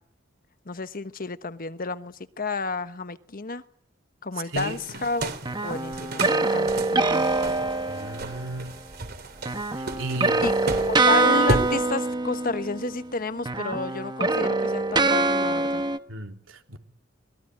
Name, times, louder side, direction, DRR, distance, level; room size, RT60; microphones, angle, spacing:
voice 1, 0.7-3.6 4.2-5.3 5.6-7.4 10.4-15.8, left 3 dB, 45° left, 12 dB, 1.2 m, -31 dB
sound 1, 4.5-11.7, right 2 dB, 55° right, 3.4 m, -33 dB
sound 2, 5.5-8.5 9.5-13.1 13.4-16.0, right 3 dB, 20° right, 1.2 m, -24 dB
voice 2, 7.9-8.7 9.7-10.4 16.1-16.8, right 2 dB, 90° right, 4 dB, 3.4 m, -34 dB
25.5 x 21.0 x 9.7 m, 0.70 s
head